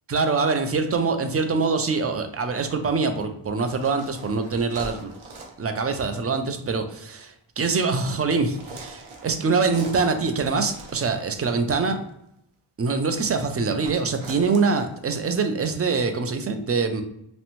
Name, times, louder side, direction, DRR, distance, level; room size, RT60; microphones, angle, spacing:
voice 1, 0.1-5.1 5.6-12.0 12.8-17.0, right 4 dB, 30° right, 7 dB, 0.4 m, -24 dB
sound 1, 0.7-1.1 3.6-5.7 6.1-6.3 8.5-11.5 13.8-15.3, right 2 dB, 75° right, 0.7 m, -42 dB
2.5 x 2.1 x 2.9 m, 0.78 s
wide cardioid pair, 50°, 49 cm